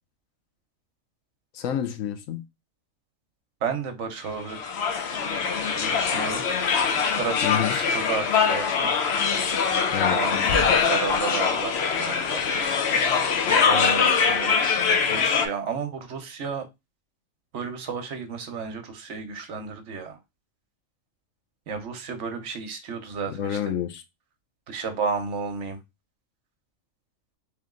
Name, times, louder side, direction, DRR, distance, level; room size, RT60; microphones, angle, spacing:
voice 1, 1.5-2.5 7.4-7.8 9.9-10.2 23.3-24.0, left 9 dB, 80° left, 1.0 m, -29 dB
voice 2, 3.6-4.6 5.7-6.4 6.9-8.9 10.1-12.5 13.5-14.6 15.1-16.7 17.5-20.2 21.7-23.6 24.7-25.8, right 5 dB, 65° right, 1.1 m, -32 dB
sound 1, 4.5-15.5, left 6 dB, 60° left, 0.8 m, -23 dB
3.3 x 3.1 x 3.6 m
omnidirectional pair, 1.4 m